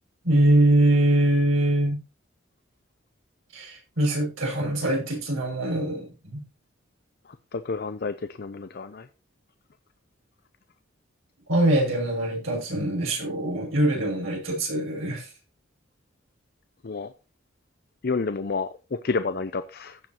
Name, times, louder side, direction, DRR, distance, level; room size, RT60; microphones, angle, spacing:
voice 1, 0.2-2.0 3.5-6.4 11.5-15.3, right 1 dB, 90° right, -1 dB, 6.3 m, -23 dB
voice 2, 7.5-9.1 16.8-17.1 18.0-20.0, left 4 dB, 50° left, 11 dB, 0.5 m, -30 dB
15.5 x 6.9 x 2.9 m, 0.30 s
head